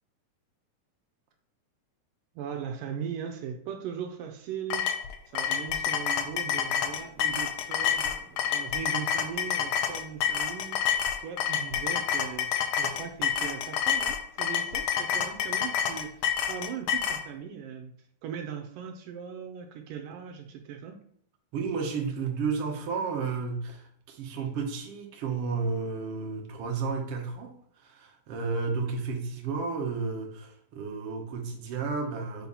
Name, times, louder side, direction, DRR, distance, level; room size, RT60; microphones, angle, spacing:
voice 1, 2.4-4.9 5.3-16.1 16.5-17.9 18.2-21.0, right 8 dB, 75° right, 5 dB, 2.3 m, -39 dB
sound 1, 4.7-17.2, left 9 dB, 90° left, 1.5 m, -28 dB
voice 2, 21.5-32.5, right 4 dB, 60° right, 1 dB, 1.7 m, -32 dB
5.3 x 4.5 x 5.5 m, 0.65 s
omnidirectional pair, 4.1 m